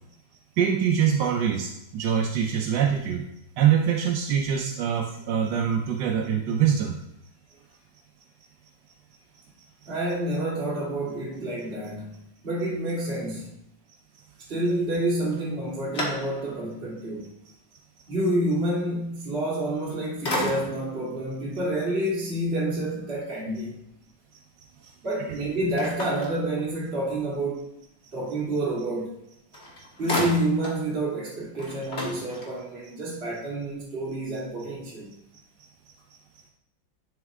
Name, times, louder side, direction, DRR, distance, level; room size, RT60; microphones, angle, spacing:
voice 1, 0.6-3.2 3.6-7.0, right 8 dB, 70° right, 1 dB, 1.2 m, -24 dB
voice 2, 9.9-13.5 14.5-17.3 18.1-23.7 25.0-27.7 28.1-29.2 30.0-35.1, right 1 dB, 30° right, -6 dB, 1.9 m, -28 dB
sound 1, 15.3-16.7 17.3-17.4 19.6-19.9 20.2-21.0 25.8-27.0 29.1-29.2 29.5-30.9 31.2-31.3 31.5-32.8, left 1 dB, 35° left, 1.6 m, -33 dB
11.5 x 4.5 x 3.6 m, 0.81 s
omnidirectional pair, 2.1 m